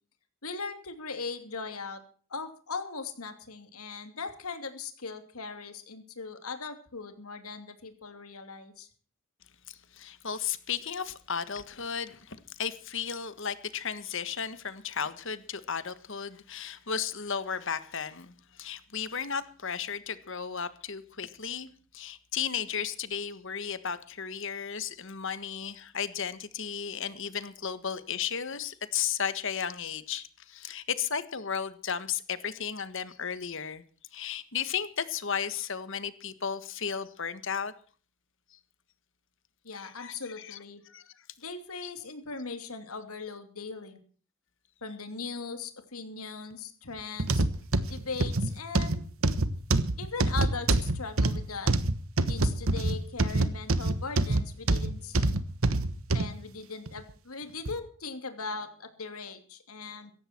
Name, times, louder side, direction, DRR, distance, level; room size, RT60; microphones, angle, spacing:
voice 1, 0.4-2.0 2.3-8.9 39.6-40.8 41.4-44.0 44.8-47.5 47.9-49.0 50.0-51.7 52.3-55.4 56.1-60.1, left 4 dB, 80° left, 8 dB, 2.9 m, -39 dB
voice 2, 9.7-21.7 21.9-33.8 34.1-37.7 39.7-40.6 40.9-41.1 41.8-41.9, left 7 dB, 55° left, 14 dB, 1.5 m, -34 dB
sound 1, 47.2-56.3 56.9-57.0 57.7-57.8, right 2 dB, 65° right, 1.3 m, -26 dB
17.0 x 14.5 x 4.5 m, 0.43 s
head